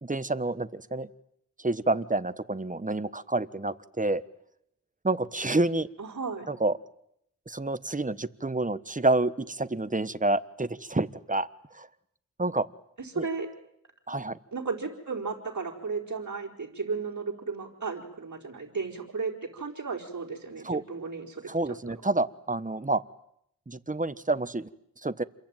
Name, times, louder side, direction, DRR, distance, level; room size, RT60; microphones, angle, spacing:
voice 1, 0.0-1.1 1.6-4.2 5.0-5.9 6.5-6.8 7.5-11.9 12.4-12.7 13.1-13.3 14.1-14.4 20.6-20.8 21.5-23.0 23.7-24.7 25.0-25.2, right 2 dB, 25° right, 14 dB, 1.3 m, -28 dB
voice 2, 6.0-6.5 13.0-13.5 14.5-21.5, right 4 dB, 60° right, -2 dB, 4.6 m, -34 dB
28.5 x 22.5 x 9.1 m, 0.75 s
cardioid pair, 50°, 33 cm